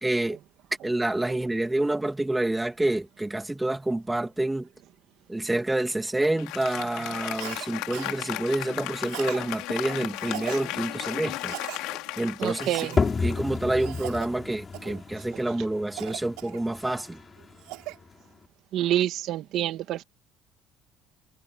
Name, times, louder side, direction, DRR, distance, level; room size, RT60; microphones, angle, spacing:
voice 1, 0.0-0.4 0.8-4.7 5.3-11.5 12.2-17.2, right 1 dB, 10° right, 2.3 m, -28 dB
Applause, 6.2-13.8, left 18 dB, 85° left, 2.8 m, -35 dB
Cough, 7.4-7.7 7.9-8.2 9.0-9.4 10.2-10.7 11.4-11.8 12.5-13.0 13.7-14.3 14.7-15.0 16.0-16.9 17.4-18.0, right 21 dB, 85° right, 5.2 m, -39 dB
voice 2, 12.4-13.1 18.7-20.0, right 13 dB, 60° right, 2.0 m, -27 dB
sound 1, 13.0-18.4, left 4 dB, 25° left, 4.9 m, -32 dB
cardioid pair, 120°, 0 cm